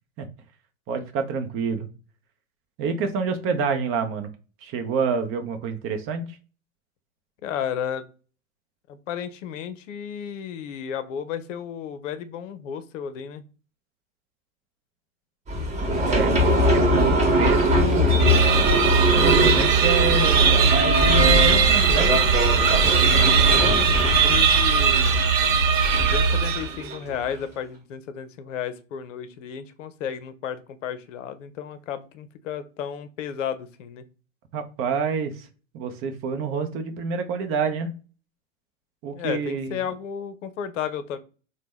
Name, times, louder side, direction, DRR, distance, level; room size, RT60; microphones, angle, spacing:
voice 1, 0.9-1.9 2.8-4.3 4.6-6.4 16.0-16.4 16.7-18.1 19.1-22.1 34.5-35.5 35.7-37.9 39.0-39.8, right 5 dB, 35° right, 7 dB, 0.6 m, -27 dB
voice 2, 7.4-8.0 8.9-13.4 23.0-25.2 26.0-34.0 39.1-41.2, left 8 dB, 70° left, 12 dB, 0.6 m, -33 dB
sound 1, 15.5-27.3, equal, 15° right, 1.1 m, -22 dB
sound 2, 18.2-26.9, right 5 dB, 75° right, 0.7 m, -19 dB
sound 3, 21.0-24.5, right 1 dB, 15° left, 0.7 m, -37 dB
2.9 x 2.2 x 3.5 m, 0.35 s
hypercardioid pair, 95°, 40 cm